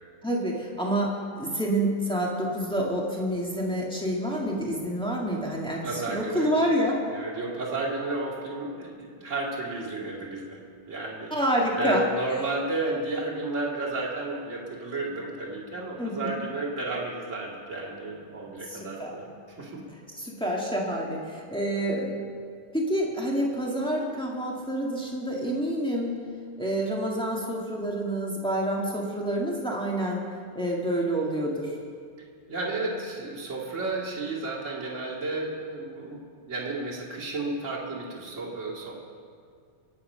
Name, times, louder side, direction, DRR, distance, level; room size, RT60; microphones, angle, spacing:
voice 1, 0.2-7.0 11.3-12.0 16.0-16.3 18.7-19.1 20.2-22.2 22.7-26.2 26.6-30.2 30.5-31.7, right 1 dB, 5° left, -3 dB, 0.4 m, -28 dB
voice 2, 5.8-6.5 7.1-10.6 10.9-11.3 11.7-19.3 19.6-19.8 32.5-36.2 36.5-38.9, right 2 dB, 25° right, -4 dB, 2.4 m, -32 dB
24.5 x 8.5 x 5.6 m, 2.1 s
omnidirectional pair, 3.9 m